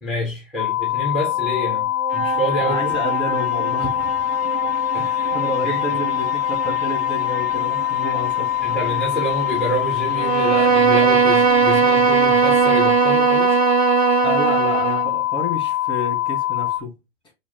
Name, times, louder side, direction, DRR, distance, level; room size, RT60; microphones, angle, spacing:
voice 1, 0.0-3.0 4.9-5.3 5.6-6.0 8.6-13.5, equal, ahead, 1.3 m, -28 dB
sound 1, 0.6-16.8, left 15 dB, 35° left, 0.6 m, -23 dB
sound 2, 0.9-13.7, right 7 dB, 30° right, 0.6 m, -33 dB
voice 2, 2.6-4.2 5.3-8.5 14.2-16.9, left 1 dB, 15° left, 1.8 m, -29 dB
Bowed string instrument, 10.2-15.1, right 7 dB, 75° right, 0.6 m, -18 dB
4.6 x 2.1 x 4.1 m
figure-of-eight pair, 100°, 32 cm